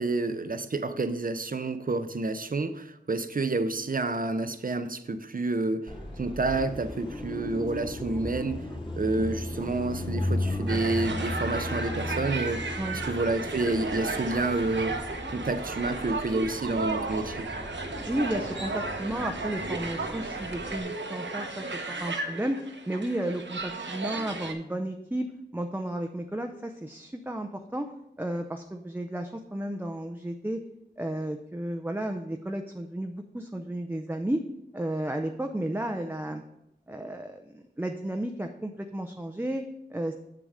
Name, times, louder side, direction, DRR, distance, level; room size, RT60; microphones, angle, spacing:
voice 1, 0.0-8.6 9.0-12.6 12.9-15.0 15.3-17.5, right 2 dB, 50° right, 10 dB, 0.6 m, -29 dB
Car passing by, 5.9-20.8, left 1 dB, 30° left, 2.8 m, -36 dB
sound 1, 10.7-24.5, right 3 dB, 90° right, 1.0 m, -34 dB
voice 2, 18.1-27.9 28.2-30.6 31.0-34.4 34.7-36.4 36.9-39.6 39.9-40.1, right 1 dB, 10° right, 4 dB, 0.6 m, -33 dB
7.2 x 6.8 x 5.0 m, 0.83 s
wide cardioid pair, 55°, 18 cm